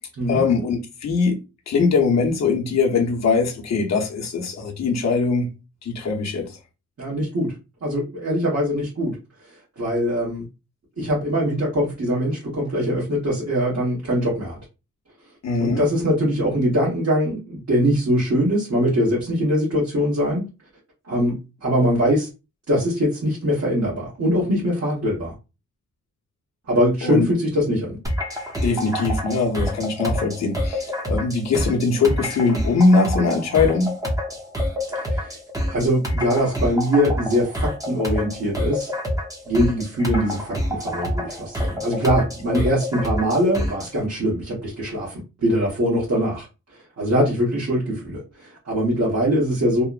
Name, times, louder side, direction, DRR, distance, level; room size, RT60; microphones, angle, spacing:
voice 1, 0.3-1.4 1.7-5.5 5.8-6.6 15.4-15.8 27.0-27.3 28.6-33.9, left 4 dB, 65° left, 0.7 m, -21 dB
voice 2, 7.0-7.5 7.8-9.1 9.8-10.4 11.0-14.6 15.6-20.4 21.1-22.3 22.7-25.3 26.7-28.0 34.9-35.3 35.7-38.9 39.4-46.5 47.0-49.8, equal, 60° right, 1.1 m, -22 dB
sound 1, 28.0-43.9, equal, 10° right, 0.6 m, -27 dB
2.9 x 2.0 x 2.3 m
wide cardioid pair, 100°, 30 cm